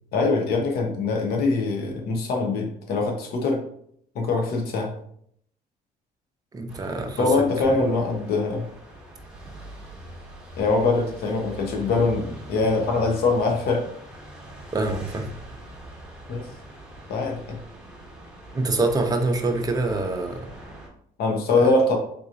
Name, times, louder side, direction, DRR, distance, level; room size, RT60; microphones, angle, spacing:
voice 1, 0.1-3.6 4.1-4.9 7.2-8.7 10.6-13.9 16.3-16.5 17.1-17.6 21.2-22.0, left 3 dB, 70° left, 2 dB, 0.8 m, -23 dB
voice 2, 6.5-7.3 14.7-15.3 18.5-20.4 21.5-21.7, right 2 dB, 20° right, 4 dB, 0.6 m, -25 dB
sound 1, 6.7-20.9, right 1 dB, 5° right, 0.9 m, -42 dB
3.8 x 2.9 x 2.6 m, 0.67 s
cardioid pair, 110°, 17 cm